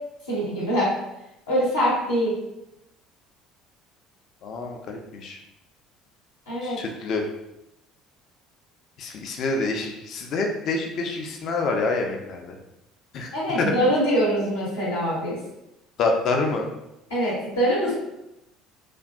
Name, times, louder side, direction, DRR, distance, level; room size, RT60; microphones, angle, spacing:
voice 1, 0.3-0.9 1.5-2.3 6.5-6.8 13.3-15.4 17.1-17.9, equal, 75° left, -7 dB, 0.7 m, -23 dB
voice 2, 4.4-5.4 6.6-7.2 9.0-12.6 13.1-13.7 16.0-16.7, left 3 dB, 45° left, 2 dB, 0.4 m, -27 dB
2.4 x 2.3 x 2.3 m, 0.90 s
figure-of-eight pair, 60°, 0 cm